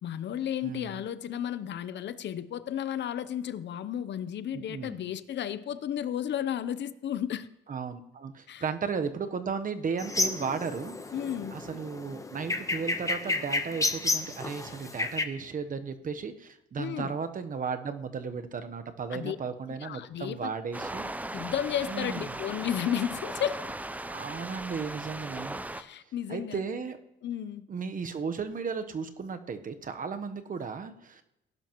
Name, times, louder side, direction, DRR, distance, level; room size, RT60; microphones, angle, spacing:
voice 1, 0.0-7.5 8.5-8.7 11.1-11.6 16.8-17.1 19.1-19.4 19.8-20.5 21.3-23.8 25.7-26.6 27.2-27.7, left 10 dB, 65° left, 0.7 m, -33 dB
voice 2, 0.6-1.0 4.5-5.0 7.7-10.9 11.5-21.1 21.9-22.4 24.1-25.6 26.3-27.0 27.7-31.2, right 5 dB, 45° right, 1.0 m, -35 dB
sound 1, 10.0-15.2, left 2 dB, 15° left, 1.0 m, -31 dB
sound 2, 20.7-25.8, right 1 dB, 10° right, 0.6 m, -38 dB
17.5 x 11.0 x 3.0 m
cardioid pair, 90°, 20 cm